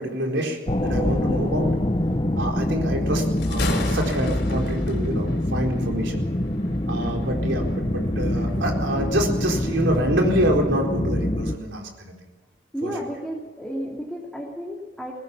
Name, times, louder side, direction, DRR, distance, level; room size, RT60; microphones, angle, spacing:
voice 1, 0.0-1.7 2.3-6.2 6.9-12.1 12.8-12.9, right 1 dB, 80° right, 0 dB, 4.3 m, -27 dB
sound 1, 0.7-11.6, left 1 dB, 25° left, 1.0 m, -25 dB
Thunder, 3.2-10.5, left 2 dB, 65° left, 4.4 m, -37 dB
voice 2, 12.7-15.1, equal, 5° left, -4 dB, 3.1 m, -32 dB
21.5 x 19.0 x 7.0 m, 1.2 s
head